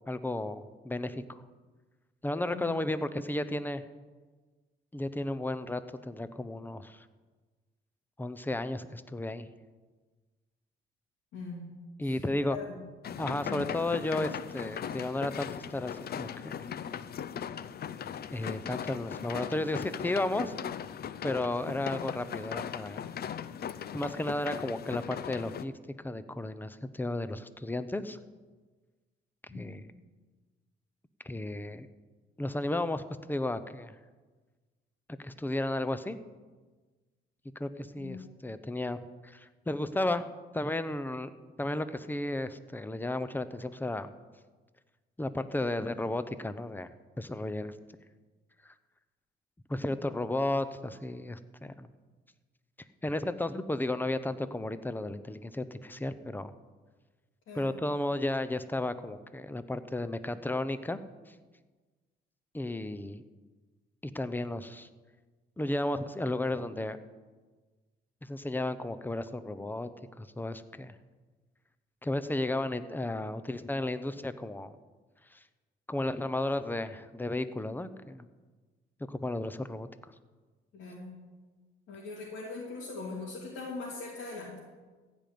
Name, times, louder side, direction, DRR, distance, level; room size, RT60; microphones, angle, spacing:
voice 1, 0.1-1.4 2.2-3.8 4.9-7.0 8.2-9.5 12.0-12.6 13.2-16.5 18.3-20.6 21.2-23.1 23.9-28.2 29.5-29.9 31.2-31.9 32.4-34.0 35.2-36.2 37.6-41.3 41.6-44.1 45.2-46.9 47.2-47.7 48.6-48.7 49.7-51.9 53.0-56.5 57.5-61.0 62.5-63.2 64.0-64.9 65.6-67.0 68.2-69.9 70.2-71.0 72.0-74.7 75.3-75.4 75.9-78.3 79.1-79.9, left 1 dB, 10° left, 12 dB, 0.8 m, -33 dB
voice 2, 11.3-11.7 12.0-12.8 13.4-13.8 29.5-29.7 38.0-38.2 57.5-57.8 80.7-81.1 81.9-84.6, left 3 dB, 80° left, -5 dB, 3.0 m, -41 dB
sound 1, 13.0-25.7, left 8 dB, 50° left, 0.6 m, -39 dB
15.5 x 5.3 x 9.4 m, 1.3 s
cardioid pair, 90°, 20 cm